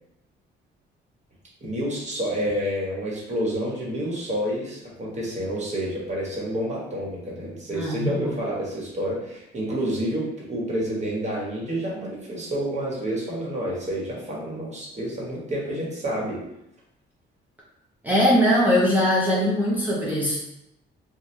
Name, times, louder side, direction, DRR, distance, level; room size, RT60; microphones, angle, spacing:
voice 1, 1.6-16.4, equal, 35° right, -4 dB, 1.2 m, -29 dB
voice 2, 7.7-8.1 18.0-20.4, equal, 10° right, -6 dB, 0.7 m, -21 dB
2.8 x 2.3 x 3.1 m, 0.82 s
cardioid pair, 90°, 20 cm